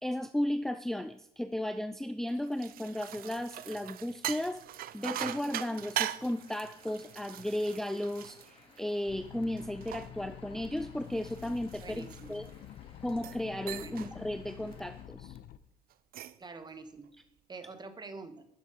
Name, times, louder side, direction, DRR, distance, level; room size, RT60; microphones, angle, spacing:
voice 1, 0.0-4.6 4.9-12.5 13.0-15.4, left 1 dB, ahead, 10 dB, 0.5 m, -35 dB
sound 1, 2.3-9.1 9.6-12.6 13.1-13.4 13.7-14.1 14.5-14.8 15.9-16.5, right 13 dB, 60° right, 0.5 m, -41 dB
sound 2, 5.2-15.0, left 3 dB, 30° left, 2.7 m, -60 dB
sound 3, 9.1-15.6, left 11 dB, 60° left, 0.7 m, -48 dB
voice 2, 11.8-12.4 13.8-14.0 16.4-18.5, right 4 dB, 25° right, 10 dB, 1.3 m, -47 dB
12.0 x 7.2 x 5.1 m, 0.80 s
cardioid pair, 110°, 17 cm